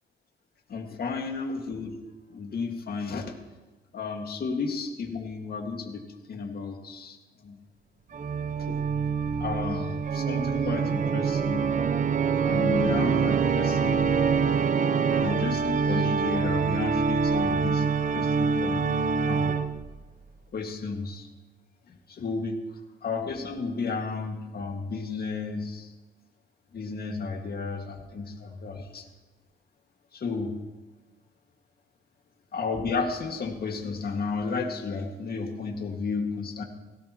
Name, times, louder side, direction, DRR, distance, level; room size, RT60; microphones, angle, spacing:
voice 1, 0.7-2.0 2.3-3.3 3.9-7.2 7.4-7.6 8.7-8.8 9.2-11.7 12.4-14.2 15.2-17.9 18.1-18.9 19.3-19.6 20.5-21.3 21.9-22.6 23.0-25.9 26.7-29.1 30.1-30.5 32.5-36.6, left 4 dB, 50° left, 2 dB, 2.1 m, -33 dB
Organ, 8.1-20.0, right 5 dB, 40° right, 0.9 m, -25 dB
17.5 x 17.5 x 3.1 m, 1.1 s
cardioid pair, 90°, 20 cm